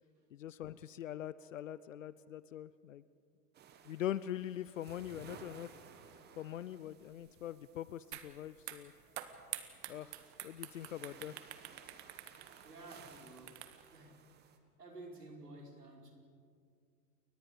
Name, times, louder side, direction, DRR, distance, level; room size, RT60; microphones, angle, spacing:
voice 1, 0.3-3.0 3.8-5.7 6.4-8.9 9.9-11.3, left 11 dB, 55° left, 17 dB, 0.7 m, -43 dB
sound 1, 3.5-14.6, right 7 dB, 20° right, 1.7 m, -59 dB
sound 2, 8.1-8.3 8.6-14.0, right 13 dB, 45° right, 1.6 m, -47 dB
voice 2, 12.6-13.6 13.9-14.2 14.8-16.1, right 2 dB, 80° right, -1 dB, 5.3 m, -52 dB
29.5 x 23.0 x 5.3 m, 2.2 s
figure-of-eight pair, 100°, 47 cm